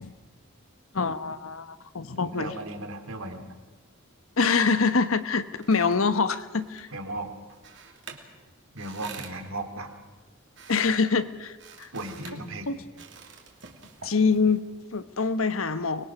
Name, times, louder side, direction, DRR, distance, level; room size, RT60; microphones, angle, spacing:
voice 1, 0.9-2.5 4.4-6.9 10.7-11.5 11.8-11.9 12.7-12.8 14.0-16.0, left 4 dB, 85° left, 12 dB, 1.1 m, -25 dB
voice 2, 2.2-3.5 6.9-7.3 8.7-9.9 11.9-12.7, right 2 dB, 85° right, 6 dB, 2.7 m, -36 dB
sound 1, 5.5-15.0, right 5 dB, 60° right, 2.6 m, -49 dB
24.5 x 21.0 x 6.1 m, 1.3 s
head